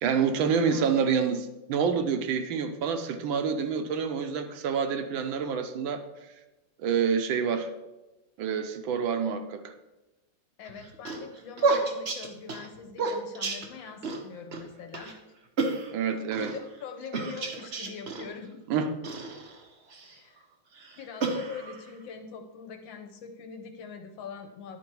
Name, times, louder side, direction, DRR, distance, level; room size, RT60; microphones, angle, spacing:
voice 1, 0.0-6.0 6.8-7.7 8.4-9.7 15.9-16.5 18.7-18.9, right 6 dB, 75° right, 7 dB, 1.4 m, -27 dB
voice 2, 0.5-0.9 10.6-15.2 16.0-18.6 20.0-20.4 21.0-24.8, left 5 dB, 75° left, 6 dB, 1.5 m, -43 dB
sound 1, 10.7-14.2 14.5-14.6 14.9-15.1 15.6-16.6 17.1-18.3 19.0-20.2 20.7-21.9, right 3 dB, 55° right, 0.7 m, -31 dB
10.5 x 4.4 x 4.5 m, 1.0 s
omnidirectional pair, 2.2 m